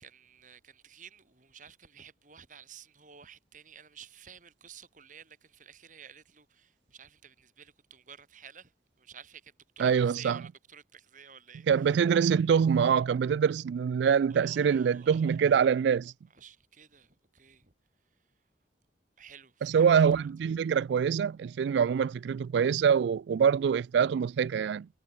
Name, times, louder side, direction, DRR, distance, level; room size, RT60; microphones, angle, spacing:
voice 1, 0.0-12.0 14.3-15.3 16.3-17.7 19.2-19.9, right 7 dB, 45° right, 2.4 m, -52 dB
voice 2, 9.8-10.4 11.7-16.1 19.6-24.9, right 7 dB, 70° right, 0.3 m, -25 dB
head